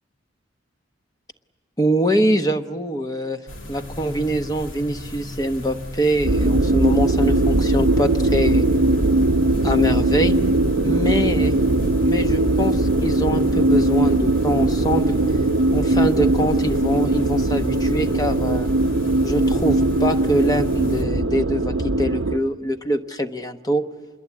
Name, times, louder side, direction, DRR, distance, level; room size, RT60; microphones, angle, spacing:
voice 1, 1.8-3.4 3.7-8.7 9.6-10.3 10.8-11.5 12.0-15.2 15.7-18.7 19.2-23.8, right 1 dB, 20° left, 7 dB, 1.0 m, -24 dB
sound 1, 3.5-21.0, left 1 dB, 85° left, 3.2 m, -35 dB
sound 2, 6.2-22.4, right 2 dB, 90° right, 0.9 m, -20 dB
26.5 x 22.0 x 8.4 m, 1.3 s
head